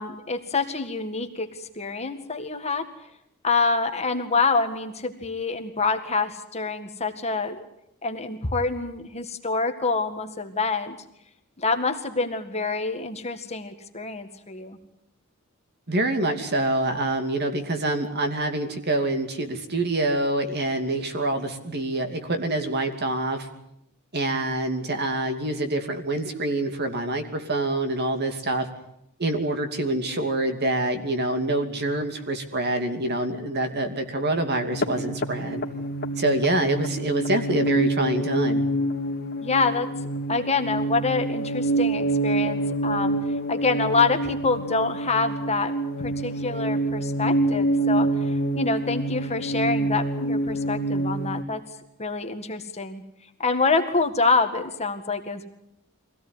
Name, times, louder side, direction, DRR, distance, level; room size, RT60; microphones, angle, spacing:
voice 1, 0.0-2.9 3.4-7.6 8.0-11.0 11.6-14.8 39.4-39.9 40.3-43.2 43.5-45.7 46.0-51.6 52.0-53.0 53.4-55.5, left 4 dB, 30° left, 6 dB, 1.9 m, -26 dB
voice 2, 15.9-23.5 24.1-28.7 29.2-35.6 36.2-38.6, right 2 dB, 50° right, 6 dB, 2.7 m, -26 dB
sound 1, 34.7-51.4, right 2 dB, 45° left, 2.1 m, -27 dB
24.0 x 17.0 x 9.7 m, 0.78 s
head